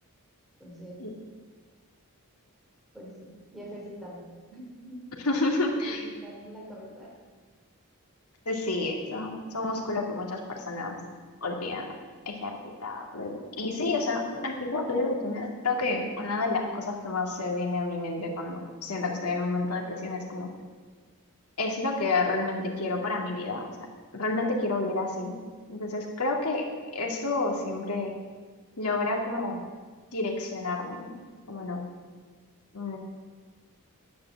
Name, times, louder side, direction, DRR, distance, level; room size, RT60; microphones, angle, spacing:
voice 1, 0.6-1.1 2.9-5.0 5.4-5.5 5.8-7.2, equal, ahead, -5 dB, 3.8 m, -44 dB
voice 2, 5.2-6.0 8.5-10.9 11.4-11.9 12.3-20.5 21.6-23.6 24.1-25.3 25.7-26.6 26.9-28.1 28.8-29.6 30.1-31.2 31.5-31.9 32.7-33.0, left 3 dB, 85° left, 1 dB, 2.3 m, -30 dB
10.5 x 10.5 x 7.5 m, 1.5 s
head